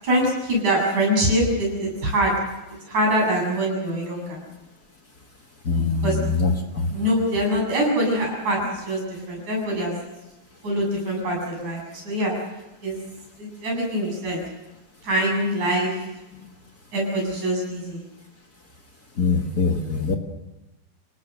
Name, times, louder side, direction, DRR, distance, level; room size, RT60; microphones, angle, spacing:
voice 1, 0.0-2.3 2.9-4.4 6.0-6.2 6.9-9.9 10.6-12.3 12.8-13.0 13.4-14.4 15.0-16.0 16.9-18.0, equal, 50° right, -1 dB, 9.2 m, -24 dB
voice 2, 5.7-6.9 19.2-20.1, left 4 dB, 55° left, 3 dB, 1.1 m, -23 dB
29.5 x 18.0 x 6.6 m, 1.0 s
omnidirectional pair, 4.2 m